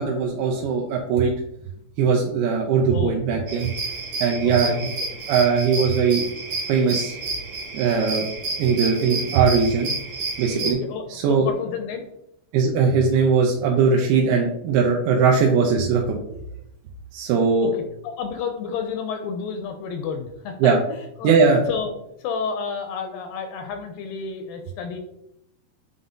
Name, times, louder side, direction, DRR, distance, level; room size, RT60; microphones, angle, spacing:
voice 1, 0.0-1.3 2.0-3.7 4.2-4.9 5.3-6.2 6.7-7.2 7.7-8.3 8.6-9.9 10.4-10.8 11.1-11.5 12.5-16.2 17.1-17.7 20.6-20.8 21.2-21.6, right 5 dB, 85° right, 0 dB, 2.7 m, -20 dB
voice 2, 2.9-3.6 4.4-5.1 10.6-12.0 17.6-21.9 22.2-25.0, left 6 dB, 80° left, 6 dB, 2.2 m, -31 dB
sound 1, 3.5-10.7, right 3 dB, 45° right, 2.2 m, -30 dB
8.2 x 3.9 x 3.8 m, 0.79 s
omnidirectional pair, 4.4 m